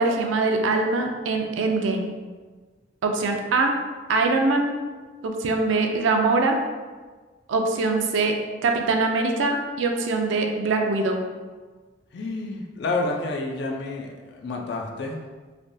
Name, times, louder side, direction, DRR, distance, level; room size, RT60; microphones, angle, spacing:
voice 1, 0.0-2.2 3.0-3.7 4.1-4.7 5.2-6.6 7.5-8.4 8.6-11.2, right 3 dB, 90° right, 3 dB, 0.4 m, -23 dB
voice 2, 12.1-15.3, left 2 dB, 60° left, 1 dB, 0.4 m, -29 dB
3.3 x 2.2 x 2.6 m, 1.4 s
head